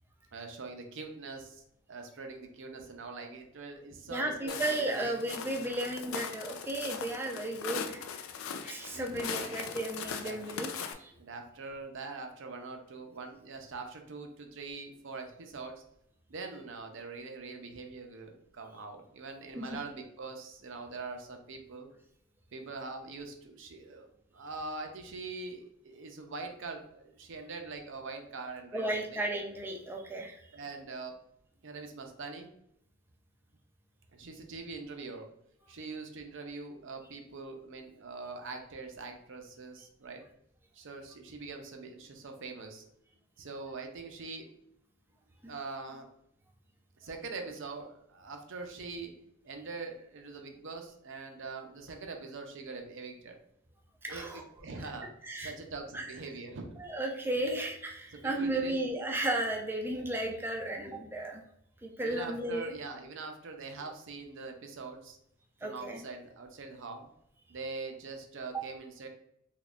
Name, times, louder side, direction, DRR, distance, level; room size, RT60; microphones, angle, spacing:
voice 1, 0.3-1.6 1.9-5.2 8.9-9.8 10.2-10.7 11.2-15.8 16.3-21.9 22.5-29.2 30.5-31.2 31.6-32.5 34.1-35.3 35.7-40.2 40.7-42.8 43.4-44.5 45.5-46.1 47.0-49.1 49.4-53.4 54.1-55.1 55.4-56.8 58.1-58.8 59.6-59.7 62.0-65.2 65.6-67.1 67.5-69.1, right 3 dB, 60° right, 4 dB, 0.6 m, -43 dB
voice 2, 4.1-8.3 8.6-10.7 11.0-11.1 19.6-19.7 28.7-30.4 45.4-45.5 54.0-54.4 55.2-55.5 55.9-56.1 56.8-61.4 61.8-62.7 65.6-66.0 68.5-68.6, right 1 dB, 10° right, 1 dB, 0.5 m, -34 dB
Walk footsteps, 4.5-10.9, left 6 dB, 65° left, 0.4 m, -40 dB
3.5 x 3.1 x 2.4 m, 0.74 s
head